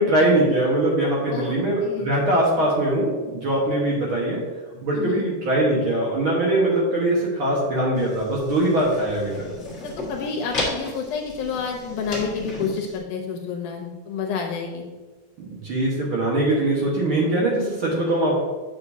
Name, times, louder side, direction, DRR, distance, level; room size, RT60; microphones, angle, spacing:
voice 1, 0.0-4.4 4.8-9.5 15.5-18.4, right 1 dB, 55° right, -4 dB, 1.6 m, -22 dB
voice 2, 1.3-2.1 2.6-2.7 4.9-5.2 9.8-14.8, left 5 dB, 75° left, 1 dB, 2.2 m, -29 dB
sound 1, 7.9-13.0, left 2 dB, 45° left, 0.9 m, -34 dB
8.4 x 6.6 x 2.7 m, 1.2 s
omnidirectional pair, 3.9 m